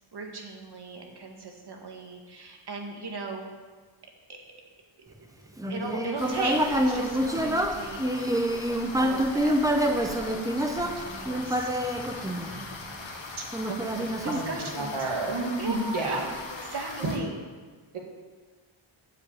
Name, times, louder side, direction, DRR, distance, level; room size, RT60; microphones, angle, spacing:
voice 1, 0.1-3.5 5.0-5.1 5.7-8.0 9.0-10.4 10.8-11.7 12.3-13.0 14.2-14.9 15.6-16.3 16.6-17.4, right 3 dB, 50° right, 1 dB, 1.8 m, -37 dB
Human voice, 5.6-12.9 13.5-15.0, equal, 5° right, 0.8 m, -27 dB
sound 1, 6.2-17.2, left 3 dB, 65° left, 1.5 m, -41 dB
voice 2, 13.9-14.5 14.8-16.3, right 2 dB, 75° right, -1 dB, 2.3 m, -30 dB
8.0 x 7.1 x 8.6 m, 1.4 s
wide cardioid pair, 145°, 49 cm